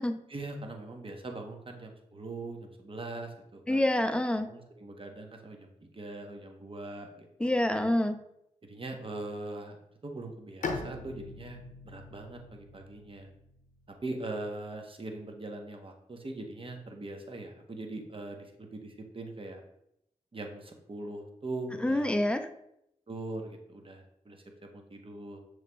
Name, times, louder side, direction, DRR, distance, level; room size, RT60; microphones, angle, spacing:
voice 1, 0.3-3.8 4.3-7.3 8.6-9.8 10.0-13.3 14.0-19.6 20.3-22.1 23.1-25.4, right 2 dB, 40° right, 3 dB, 0.8 m, -41 dB
voice 2, 3.7-4.5 7.4-8.2 21.8-22.5, left 1 dB, 10° left, 7 dB, 0.5 m, -27 dB
Bowed string instrument, 10.6-14.2, left 3 dB, 70° left, 0.6 m, -41 dB
6.5 x 3.1 x 2.2 m, 0.78 s
cardioid pair, 40°, 14 cm